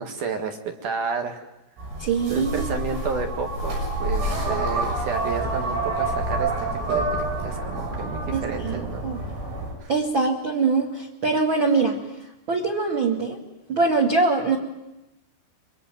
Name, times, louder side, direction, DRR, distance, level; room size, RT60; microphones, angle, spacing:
voice 1, 0.0-1.4 2.3-9.1 9.8-9.9, right 5 dB, 55° right, 5 dB, 2.5 m, -31 dB
sound 1, 1.8-9.7, right 2 dB, 80° right, 9.4 m, -28 dB
voice 2, 2.0-2.7 8.3-9.2 9.9-12.0 12.5-13.4 13.7-14.6, right 4 dB, 40° right, 3 dB, 1.9 m, -23 dB
25.0 x 24.0 x 9.2 m, 0.93 s
omnidirectional pair, 5.9 m